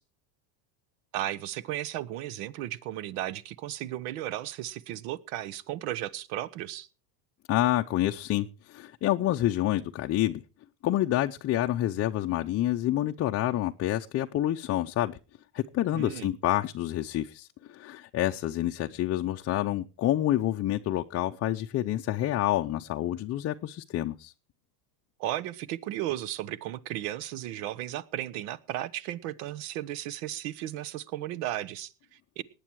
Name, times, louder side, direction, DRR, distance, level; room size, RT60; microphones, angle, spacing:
voice 1, 1.1-6.9 15.9-16.3 25.2-32.4, right 13 dB, 70° right, 1.2 m, -35 dB
voice 2, 7.5-10.4 10.8-15.2 15.5-24.3, left 13 dB, 30° left, 0.6 m, -28 dB
19.0 x 9.1 x 4.6 m
supercardioid pair, 130°, 50 cm